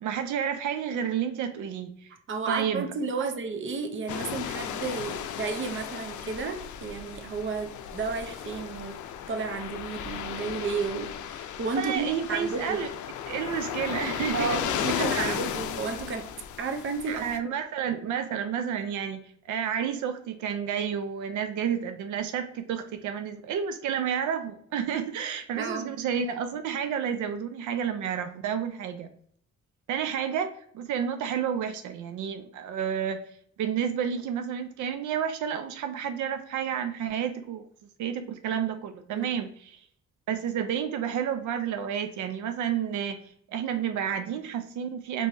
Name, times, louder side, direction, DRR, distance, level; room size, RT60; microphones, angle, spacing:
voice 1, 0.0-2.1 2.5-2.9 11.8-12.9 13.3-15.4 17.1-19.2 19.5-29.1 29.9-33.2 33.6-37.6 38.0-39.8 40.3-43.2 43.5-45.3, right 8 dB, 85° right, 8 dB, 0.5 m, -30 dB
voice 2, 2.3-9.0 9.3-12.8 14.3-16.3 16.6-17.3 25.5-25.9 39.1-39.3 43.5-43.6, right 4 dB, 45° right, 6 dB, 0.6 m, -32 dB
sound 1, 4.1-17.4, left 9 dB, 85° left, 0.5 m, -35 dB
4.4 x 3.1 x 2.6 m, 0.63 s
cardioid pair, 120°, 29 cm